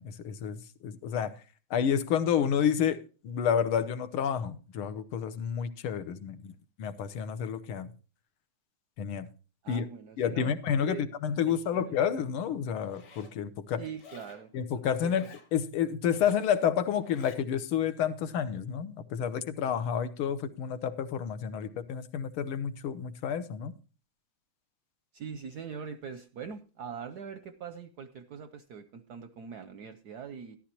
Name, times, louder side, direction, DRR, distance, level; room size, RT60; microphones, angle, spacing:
voice 1, 0.0-1.4 1.7-6.5 6.8-7.9 9.0-9.3 9.7-9.9 10.2-13.8 14.5-23.7, left 8 dB, 80° left, 1.7 m, -30 dB
voice 2, 9.6-10.6 10.8-11.0 11.7-11.8 13.8-15.1 25.1-30.6, right 6 dB, 70° right, 1.0 m, -42 dB
Zipper (clothing), 12.8-13.4 14.0-14.5 15.0-15.5 16.0-16.5 17.0-17.4, left 4 dB, 50° left, 2.3 m, -52 dB
13.0 x 11.5 x 2.9 m
omnidirectional pair, 2.4 m